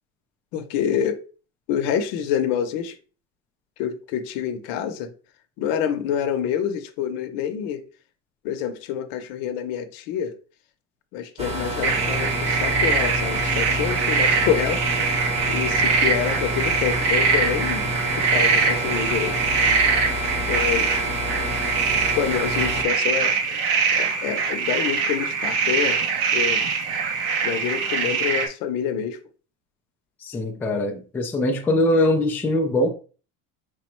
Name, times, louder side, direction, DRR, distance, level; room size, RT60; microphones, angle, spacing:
voice 1, 0.5-1.2 1.7-3.0 3.8-5.1 5.6-7.8 8.4-10.3 11.1-15.1 15.5-17.9 18.2-19.4 20.5-21.0 22.2-23.6 23.9-26.0 26.3-26.7 27.4-29.2, left 9 dB, 65° left, 0.8 m, -27 dB
sound 1, 11.4-22.8, equal, 20° right, 0.9 m, -28 dB
sound 2, 11.8-28.5, right 5 dB, 85° right, 1.1 m, -23 dB
voice 2, 30.2-32.9, left 1 dB, 5° left, 0.4 m, -22 dB
4.9 x 2.1 x 4.4 m
cardioid pair, 155°, 34 cm